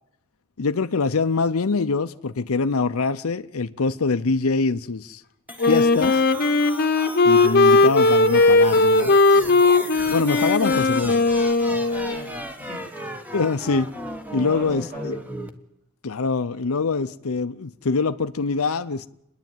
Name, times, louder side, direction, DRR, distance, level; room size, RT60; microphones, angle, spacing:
voice 1, 0.6-5.2 5.6-6.2 7.2-9.1 10.1-11.2 13.3-13.9 14.3-15.2 16.0-19.1, left 4 dB, 70° left, 0.7 m, -24 dB
sound 1, 5.5-15.5, equal, 5° right, 1.3 m, -36 dB
Wind instrument woodwind instrument, 5.6-12.3, left 3 dB, 45° left, 1.0 m, -18 dB
voice 2, 9.3-9.6 11.9-12.8 14.3-15.1, right 1 dB, 35° right, 7.1 m, -40 dB
27.5 x 10.5 x 9.2 m
head